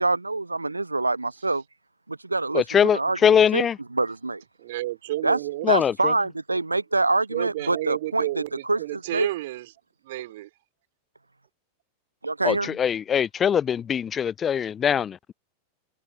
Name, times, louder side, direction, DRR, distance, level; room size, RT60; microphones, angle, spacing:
voice 1, 0.0-1.6 2.1-2.6 2.9-3.7 3.9-4.4 5.2-5.4 5.7-9.3 12.2-12.8, right 2 dB, 80° right, 0.8 m, -25 dB
voice 2, 2.5-3.8 5.6-6.1 12.4-15.3, left 8 dB, 25° left, 0.5 m, -22 dB
voice 3, 4.6-5.7 7.3-9.7 10.0-10.5, right 16 dB, 55° right, 2.4 m, -31 dB
figure-of-eight pair, 90°, 0 cm